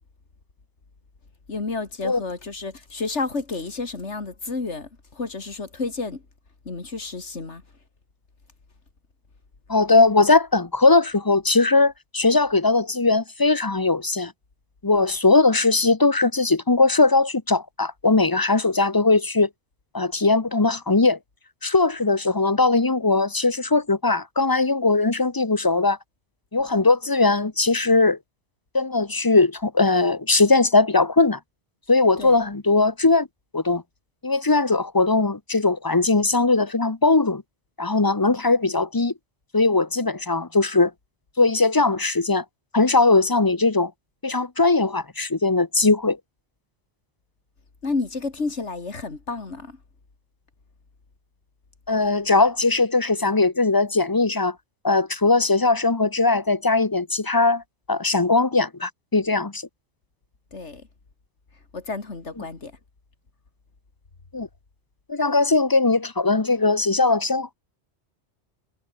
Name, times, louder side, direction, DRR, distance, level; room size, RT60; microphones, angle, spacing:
voice 1, 1.5-6.2 6.7-7.6 32.2-32.4 47.8-49.8 60.5-60.8 61.7-62.7, left 3 dB, 90° left, 3.0 m, -31 dB
voice 2, 9.7-14.3 14.8-19.5 19.9-21.2 21.6-26.0 26.5-28.2 28.7-31.4 31.9-33.3 33.5-33.8 34.2-37.4 37.8-39.1 39.5-40.9 41.4-42.4 42.7-43.9 44.2-46.2 51.9-54.5 54.8-57.6 57.9-59.6 62.4-62.5 64.3-64.5 65.1-67.5, left 3 dB, 20° left, 1.1 m, -20 dB
omnidirectional pair, 1.1 m